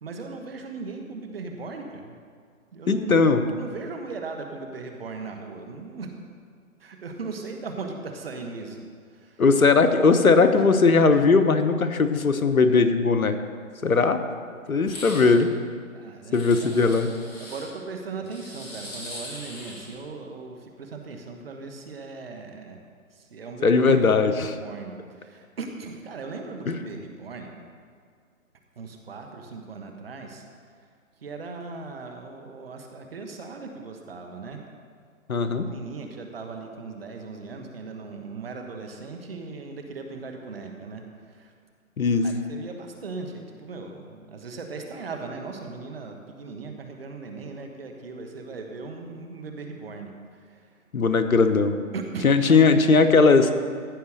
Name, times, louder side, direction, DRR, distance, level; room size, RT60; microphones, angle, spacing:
voice 1, 0.0-2.2 2.7-6.1 6.8-8.8 9.1-9.4 15.9-17.0 17.4-22.8 23.1-27.5 28.8-30.4 31.2-34.6 35.5-41.0 41.3-41.5 42.2-50.6 51.9-52.6, right 4 dB, 45° right, 3 dB, 1.3 m, -38 dB
voice 2, 2.9-3.4 9.4-13.4 13.8-14.2 14.7-15.5 16.3-17.1 23.6-24.6 26.7-26.8 35.3-35.7 42.0-42.3 50.9-51.8 52.2-53.5, left 4 dB, 80° left, 8 dB, 1.1 m, -19 dB
sound 1, 14.8-15.3 16.3-17.7 18.3-20.0, left 1 dB, 10° left, 1.0 m, -40 dB
15.0 x 5.0 x 6.4 m, 2.1 s
figure-of-eight pair, 150°, 42 cm